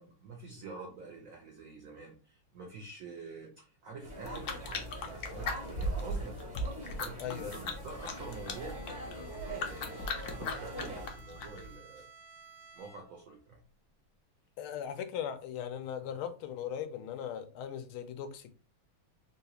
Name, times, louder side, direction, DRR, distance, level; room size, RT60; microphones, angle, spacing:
voice 1, 0.0-6.4 6.9-12.1 12.7-13.6, right 4 dB, 75° right, 0.8 m, -47 dB
sound 1, 4.0-11.1, right 1 dB, 40° right, 0.6 m, -44 dB
sound 2, 4.2-11.8, left 2 dB, 70° left, 0.9 m, -39 dB
voice 2, 7.2-7.6 14.6-18.5, left 9 dB, 90° left, 1.4 m, -38 dB
Bowed string instrument, 7.9-13.3, right 4 dB, 90° right, 1.6 m, -55 dB
3.7 x 2.3 x 2.8 m
omnidirectional pair, 2.2 m